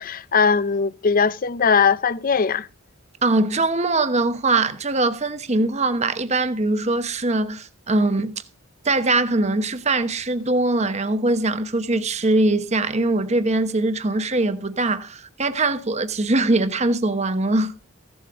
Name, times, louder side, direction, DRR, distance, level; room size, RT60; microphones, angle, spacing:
voice 1, 0.0-2.7, left 5 dB, 45° left, 0.6 m, -20 dB
voice 2, 3.2-8.4 8.8-17.7, right 2 dB, 35° right, 1.0 m, -22 dB
16.0 x 8.0 x 4.9 m
head